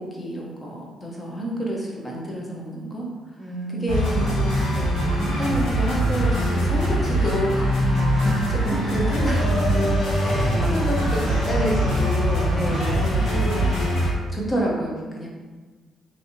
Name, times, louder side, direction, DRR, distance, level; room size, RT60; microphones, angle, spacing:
voice 1, 0.0-3.1 3.8-7.7 8.7-13.7 14.3-15.3, equal, 20° left, -3 dB, 0.8 m, -29 dB
voice 2, 3.4-4.1 7.9-8.9 10.4-11.4 14.4-15.3, right 1 dB, 15° right, 0 dB, 0.6 m, -34 dB
sound 1, 3.9-14.1, equal, 70° left, 1.4 m, -22 dB
3.2 x 2.6 x 2.8 m, 1.3 s
cardioid pair, 90°, 0 cm